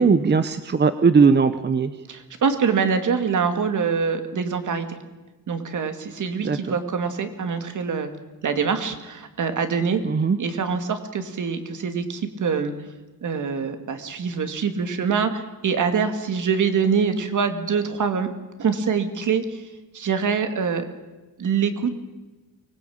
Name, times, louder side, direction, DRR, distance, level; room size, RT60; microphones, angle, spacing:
voice 1, 0.0-1.9 6.4-6.8 10.0-10.4, right 5 dB, 30° right, 11 dB, 0.8 m, -19 dB
voice 2, 2.1-5.0 5.5-8.1 8.4-10.0 10.4-12.7 13.2-18.3 18.6-19.6 19.9-20.8 21.4-21.9, right 6 dB, 60° right, 8 dB, 2.5 m, -24 dB
24.5 x 20.0 x 8.8 m, 1.2 s
wide cardioid pair, 175°, 35 cm